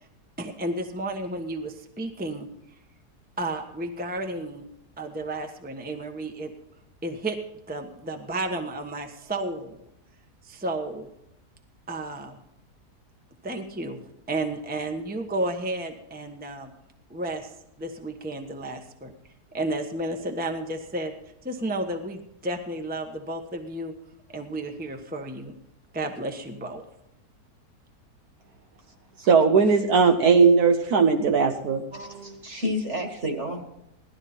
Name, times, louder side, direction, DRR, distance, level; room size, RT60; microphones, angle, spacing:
voice 1, 0.4-2.5 3.4-4.7 5.0-6.5 7.0-7.4 7.7-9.8 10.4-11.1 11.9-12.4 13.4-14.0 14.3-16.7 17.1-17.5 17.8-19.1 19.5-21.1 21.4-23.9 24.3-25.5 25.9-26.8, right 1 dB, 5° right, 4 dB, 1.0 m, -32 dB
voice 2, 29.2-31.8, right 5 dB, 70° right, 5 dB, 1.4 m, -18 dB
voice 3, 31.9-33.6, left 1 dB, 45° right, 3 dB, 2.6 m, -30 dB
17.0 x 13.0 x 4.3 m, 0.83 s
omnidirectional pair, 1.7 m